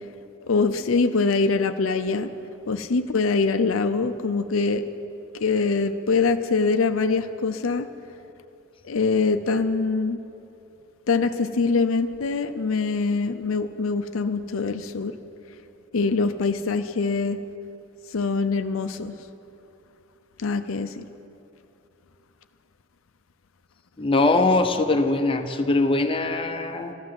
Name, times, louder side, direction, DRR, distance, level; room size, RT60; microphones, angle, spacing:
voice 1, 0.5-2.3 2.7-4.8 5.4-7.9 8.8-10.2 11.1-15.1 15.9-17.4 18.1-19.2 20.4-21.1, left 4 dB, 70° left, 9 dB, 0.6 m, -23 dB
voice 2, 24.0-26.9, left 2 dB, 25° left, 6 dB, 0.7 m, -22 dB
13.0 x 12.0 x 7.7 m, 2.8 s
head